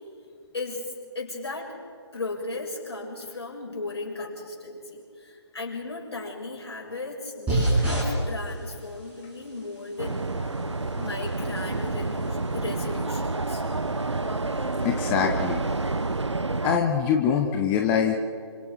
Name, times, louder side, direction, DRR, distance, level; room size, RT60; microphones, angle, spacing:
voice 1, 0.5-0.9 1.2-1.8 2.1-10.3 10.9-13.6, left 3 dB, 60° left, -1 dB, 6.8 m, -36 dB
sound 1, 7.5-16.2, right 1 dB, 10° right, 7.2 m, -33 dB
sound 2, 10.0-16.8, right 3 dB, 80° right, 1.1 m, -29 dB
voice 2, 14.8-15.6 16.6-18.2, left 8 dB, 10° left, 3 dB, 0.7 m, -23 dB
27.5 x 25.5 x 4.8 m, 2.3 s
figure-of-eight pair, 145°, 15 cm